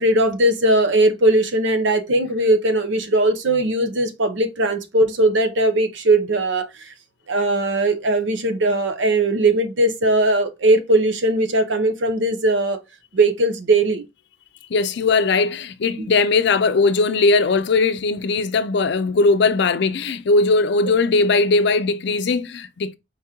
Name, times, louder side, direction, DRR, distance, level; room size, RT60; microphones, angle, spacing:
voice 1, 0.0-6.6 7.3-12.8 13.1-14.0 16.0-16.1, right 2 dB, 75° right, 0.7 m, -19 dB
voice 2, 14.7-23.0, left 3 dB, 65° left, 0.5 m, -19 dB
4.5 x 2.9 x 3.6 m
head